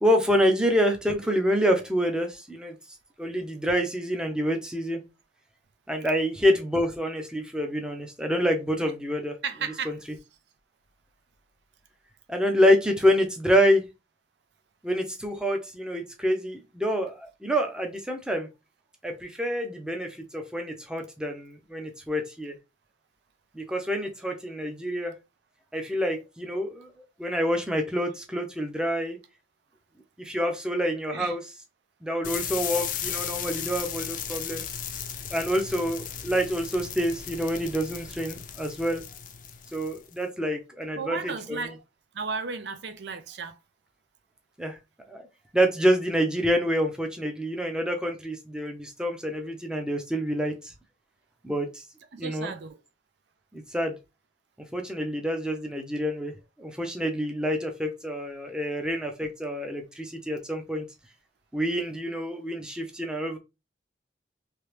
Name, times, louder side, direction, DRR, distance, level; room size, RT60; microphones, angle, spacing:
voice 1, 0.0-2.8 3.2-5.0 5.9-9.4 9.8-10.0 12.3-13.8 14.8-18.5 19.0-22.5 23.5-25.2 25.7-26.9 27.2-29.2 30.2-31.5 32.0-34.7 35.3-39.0 39.7-41.7 44.6-44.8 45.1-45.3 45.5-50.7 51.4-51.8 52.2-52.5 53.5-54.0 54.7-56.3 56.6-60.9 61.5-63.4, equal, 5° right, 0.6 m, -27 dB
voice 2, 9.4-9.9 31.1-31.4 41.0-41.8 42.1-43.6 52.2-52.8, right 5 dB, 70° right, 0.5 m, -34 dB
sound 1, 32.2-40.1, left 8 dB, 50° left, 0.5 m, -35 dB
3.2 x 2.9 x 3.2 m
head